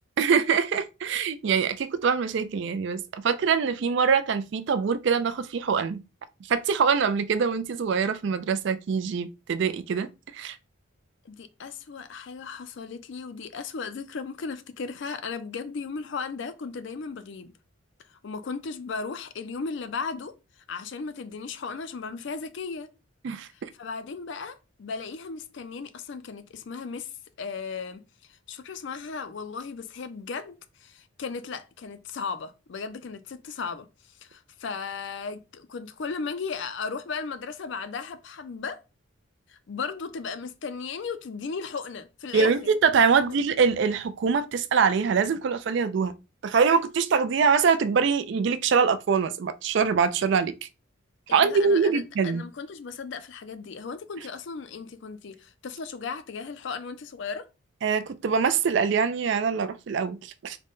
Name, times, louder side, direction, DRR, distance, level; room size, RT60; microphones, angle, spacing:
voice 1, 0.2-6.0 6.5-10.6 23.2-23.7 42.3-46.1 46.4-50.7 51.3-52.4 57.8-60.6, right 6 dB, 55° right, 0.3 m, -24 dB
voice 2, 11.2-17.5 18.1-20.3 20.7-22.9 23.8-27.1 27.4-28.0 28.3-33.9 34.2-38.8 39.5-42.5 43.1-43.4 51.3-57.5, left 5 dB, 60° left, 0.4 m, -36 dB
3.8 x 2.1 x 3.5 m
head